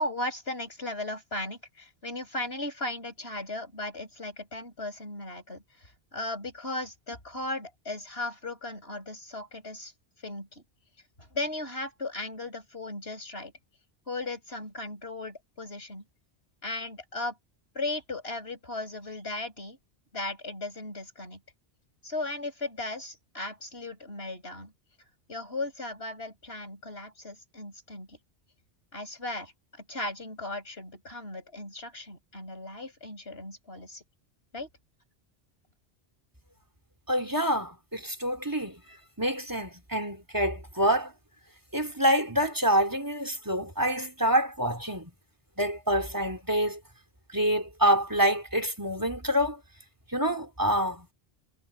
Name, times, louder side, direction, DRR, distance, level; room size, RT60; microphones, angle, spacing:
voice 1, 0.0-9.9 10.2-10.6 11.2-13.5 14.1-16.0 16.6-17.4 17.7-19.8 20.1-21.4 22.0-24.7 25.3-28.2 28.9-34.0 34.5-34.7, left 2 dB, 65° left, 7.8 m, -36 dB
voice 2, 37.1-38.8 39.2-41.1 41.7-45.1 45.6-46.8 47.3-49.6 50.1-51.1, equal, 20° right, 3.5 m, -26 dB
omnidirectional pair, 1.1 m